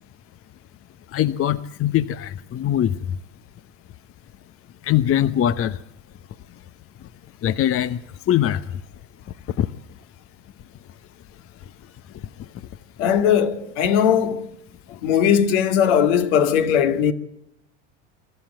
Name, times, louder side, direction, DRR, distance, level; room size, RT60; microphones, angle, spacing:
voice 1, 1.1-2.9 4.8-5.8 7.4-8.0 8.3-8.6 9.6-9.7, left 11 dB, 40° left, 0.9 m, -21 dB
voice 2, 13.0-14.5 15.0-17.1, left 8 dB, 70° left, 2.3 m, -19 dB
23.5 x 13.0 x 9.1 m
hypercardioid pair, 90°, 36 cm